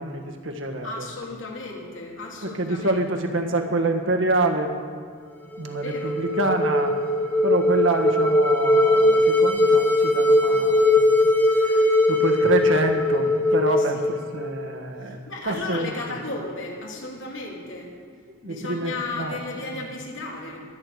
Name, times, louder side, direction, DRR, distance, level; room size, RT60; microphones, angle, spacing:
voice 1, 0.0-1.1 2.4-4.7 5.6-6.9 7.4-11.3 11.6-16.2 18.4-19.9, right 2 dB, 70° right, 4 dB, 1.5 m, -27 dB
voice 2, 0.8-3.0 5.7-6.2 13.7-14.0 15.3-17.9 18.4-20.6, left 2 dB, 70° left, -1 dB, 2.8 m, -34 dB
sound 1, 5.5-14.7, left 1 dB, 10° left, 1.2 m, -20 dB
22.5 x 8.7 x 4.9 m, 2.1 s
head